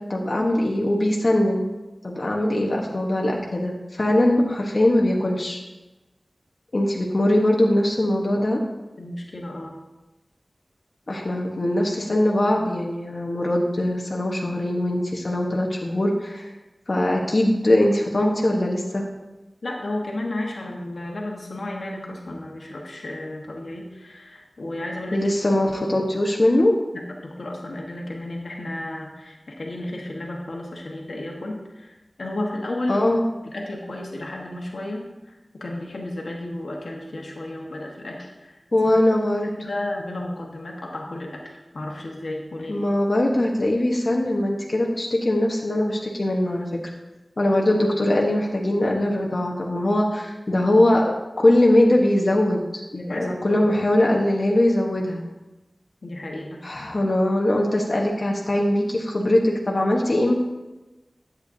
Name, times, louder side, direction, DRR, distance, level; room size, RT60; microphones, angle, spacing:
voice 1, 0.0-1.7 2.0-5.6 6.7-8.6 11.1-16.5 16.9-19.1 25.1-26.7 32.9-33.2 38.7-39.7 42.7-46.8 47.4-51.1 51.4-52.8 53.1-55.2 56.6-60.3, left 1 dB, 55° left, -1 dB, 1.2 m, -21 dB
voice 2, 9.0-9.8 19.6-25.2 26.9-33.1 33.4-38.6 39.6-42.8 52.9-53.7 56.0-56.9, left 1 dB, 85° left, -1 dB, 1.3 m, -33 dB
11.0 x 8.4 x 2.7 m, 1.1 s
wide cardioid pair, 55°, 0 cm